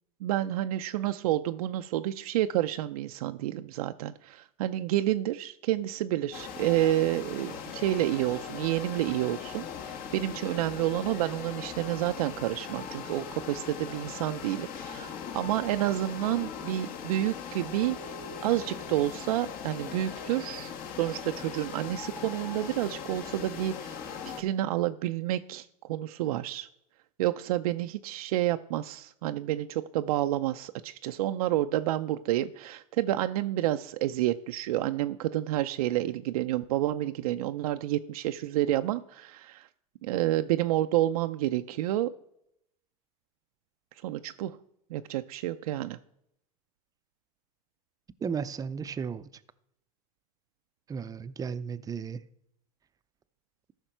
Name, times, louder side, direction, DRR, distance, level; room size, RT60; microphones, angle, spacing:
voice 1, 0.2-24.0 24.2-26.7 27.2-39.7 40.0-42.1 44.0-44.6 44.9-46.0, right 14 dB, 85° right, 0.4 m, -29 dB
sound 1, 6.3-24.4, left 7 dB, 50° left, 1.4 m, -40 dB
voice 2, 48.2-49.3 50.9-52.2, right 6 dB, 20° right, 0.5 m, -34 dB
13.5 x 5.8 x 4.4 m
supercardioid pair, 110°, 18 cm